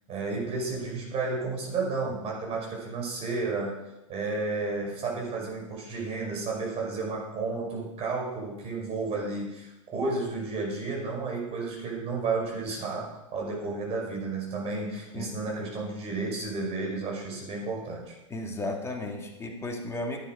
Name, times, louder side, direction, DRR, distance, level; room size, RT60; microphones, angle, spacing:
voice 1, 0.1-3.7 4.1-18.1, right 3 dB, 35° right, -1 dB, 5.7 m, -32 dB
voice 2, 18.3-20.2, left 1 dB, 15° left, 0 dB, 2.7 m, -34 dB
11.5 x 10.0 x 5.1 m, 0.94 s
hypercardioid pair, 95°, 17 cm